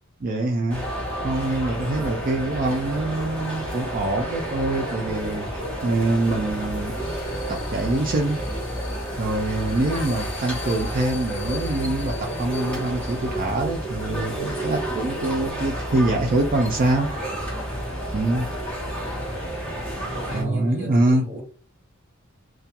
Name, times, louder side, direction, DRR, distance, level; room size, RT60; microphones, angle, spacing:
voice 1, 0.2-0.8 1.2-7.0 7.5-8.4 9.2-17.1 18.1-18.5 20.3-21.2, right 2 dB, 40° right, 0.4 m, -24 dB
sound 1, 0.7-20.4, right 1 dB, 5° left, 0.8 m, -30 dB
voice 2, 1.9-2.3 20.1-21.4, equal, 10° right, 1.2 m, -33 dB
sound 2, 6.5-14.1, left 5 dB, 55° left, 0.7 m, -43 dB
2.3 x 2.2 x 2.8 m
head